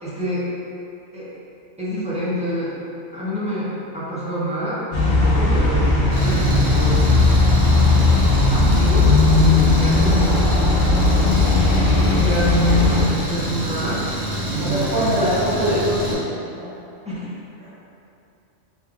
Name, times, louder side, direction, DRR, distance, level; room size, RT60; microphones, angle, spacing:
voice 1, 0.0-0.4 1.1-1.3 1.8-2.8 3.1-7.1 8.5-10.4 11.7-14.0 14.5-15.3 17.0-17.3, right 1 dB, 10° right, -11 dB, 0.4 m, -27 dB
sound 1, 4.9-13.0, left 3 dB, 60° left, 0.8 m, -17 dB
Engine, 6.1-16.1, equal, 60° right, 1.1 m, -27 dB
voice 2, 14.6-16.2 16.6-16.7 17.6-17.7, equal, 80° right, -16 dB, 1.4 m, -23 dB
3.1 x 2.3 x 3.6 m, 2.8 s
omnidirectional pair, 1.2 m